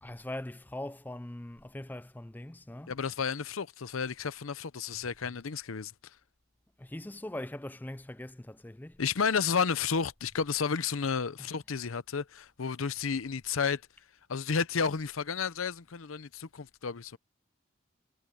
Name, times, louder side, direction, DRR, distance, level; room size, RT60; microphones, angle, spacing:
voice 1, 0.0-2.9 6.8-9.0 11.4-11.5, left 1 dB, 10° left, 0.4 m, -41 dB
voice 2, 2.9-5.9 9.0-13.8 14.3-17.2, left 6 dB, 85° left, 0.7 m, -32 dB
head